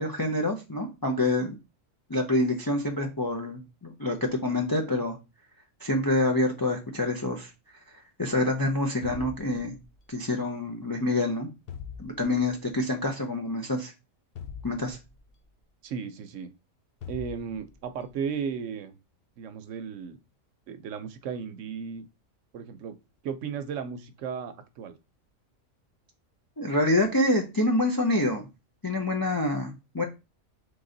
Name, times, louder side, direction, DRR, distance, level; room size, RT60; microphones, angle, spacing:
voice 1, 0.0-1.6 2.1-5.2 5.8-7.5 8.2-9.8 10.1-11.5 12.0-13.9 14.6-15.0 26.6-28.4 28.8-30.0, left 1 dB, 30° left, 2 dB, 0.4 m, -27 dB
sound 1, 9.0-10.2 11.7-12.6 14.4-15.4 17.0-18.0, left 7 dB, 60° left, 0.7 m, -42 dB
voice 2, 15.8-16.5 17.1-19.0 19.4-20.2 20.7-22.1 22.5-23.0 23.2-25.0, right 6 dB, 70° right, 10 dB, 0.9 m, -35 dB
3.9 x 3.2 x 3.8 m, 0.26 s
omnidirectional pair, 1.4 m